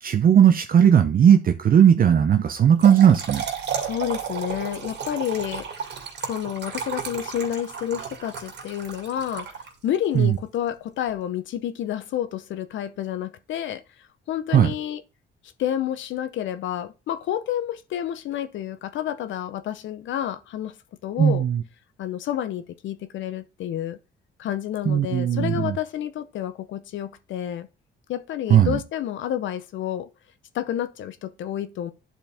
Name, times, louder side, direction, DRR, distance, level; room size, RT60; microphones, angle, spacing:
voice 1, 0.0-3.4 10.1-10.4 14.5-14.7 21.2-21.6 24.9-25.8 28.5-28.8, right 8 dB, 45° right, 0.6 m, -17 dB
Trickle dribble / Fill (with liquid), 2.6-10.0, right 7 dB, 60° right, 2.2 m, -33 dB
voice 2, 3.8-5.9 6.2-9.5 9.8-15.0 15.6-20.8 21.0-21.4 22.0-24.0 24.4-27.7 28.1-30.1 30.5-31.9, left 11 dB, 70° left, 0.6 m, -29 dB
10.0 x 4.4 x 3.5 m
cardioid pair, 90°, 20 cm